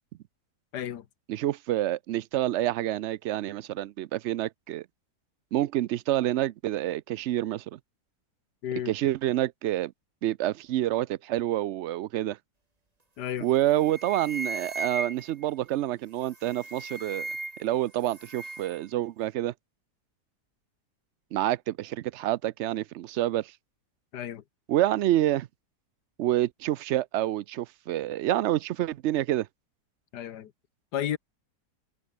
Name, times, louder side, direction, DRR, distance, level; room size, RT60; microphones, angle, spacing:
voice 1, 0.7-1.0 8.6-8.9 13.2-13.5 24.1-24.4 30.1-30.5 30.9-31.2, left 10 dB, 85° left, 1.6 m, -32 dB
voice 2, 1.3-4.9 5.5-7.8 8.9-9.9 10.2-12.4 13.4-17.3 17.6-19.5 21.3-23.5 24.7-25.5 26.2-29.5, right 14 dB, 75° right, 0.6 m, -28 dB
sound 1, 13.3-13.5 13.8-15.4 16.3-17.7 18.0-18.8, right 2 dB, 25° right, 2.1 m, -37 dB
omnidirectional pair, 1.7 m